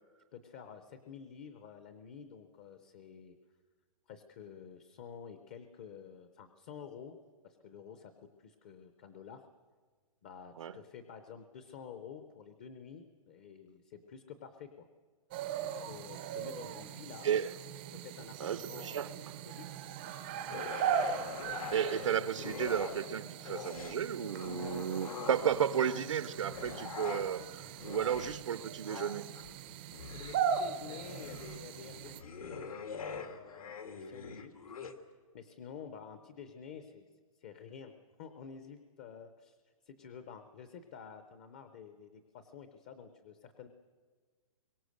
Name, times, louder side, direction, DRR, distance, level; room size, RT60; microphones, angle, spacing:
voice 1, 0.3-3.4 4.1-7.2 7.4-9.5 10.2-14.9 15.7-17.3 17.9-19.9 25.8-26.1 30.1-32.6 33.2-34.5 35.3-37.1 37.4-39.6 39.8-43.7, left 7 dB, 20° left, 0.6 m, -50 dB
sound 1, 15.3-32.2, right 7 dB, 15° right, 0.6 m, -39 dB
voice 2, 18.4-19.1 21.7-29.3, right 8 dB, 60° right, 0.7 m, -33 dB
sound 2, 20.5-23.1 23.4-25.8 26.3-34.9, left 6 dB, 85° left, 2.3 m, -44 dB
25.0 x 23.0 x 6.5 m
hypercardioid pair, 180°, 18 cm